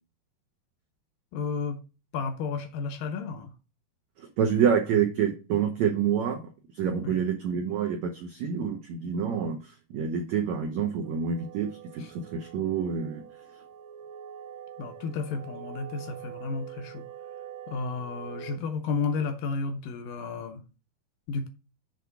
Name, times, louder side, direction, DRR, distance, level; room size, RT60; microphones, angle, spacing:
voice 1, 1.3-1.8 2.1-3.5 7.0-7.2 12.0-12.1 14.8-17.0 17.7-20.6 21.3-21.5, left 4 dB, 75° left, 2.1 m, -32 dB
voice 2, 4.4-6.4 6.8-9.6 9.9-11.7 11.9-13.2, right 7 dB, 80° right, 1.6 m, -27 dB
sound 1, 11.0-18.6, right 9 dB, 50° right, 1.4 m, -44 dB
7.8 x 3.5 x 5.8 m
omnidirectional pair, 4.4 m